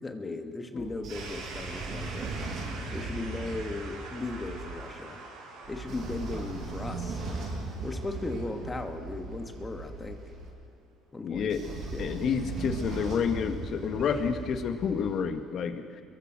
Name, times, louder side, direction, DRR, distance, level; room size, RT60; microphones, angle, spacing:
voice 1, 0.0-2.4 2.9-5.2 5.7-7.2 7.8-10.2 11.1-11.5 11.9-12.1, left 2 dB, 20° left, 5 dB, 2.6 m, -37 dB
Train / Sliding door, 0.8-4.8 5.6-10.5 11.3-15.2, right 3 dB, 55° right, 7.9 m, -38 dB
sound 1, 1.1-10.9, right 3 dB, 85° right, 7.7 m, -46 dB
voice 2, 11.2-11.6 12.0-15.8, left 6 dB, 55° left, 7 dB, 2.2 m, -29 dB
29.0 x 22.5 x 6.5 m, 2.3 s
cardioid pair, 105°, 0 cm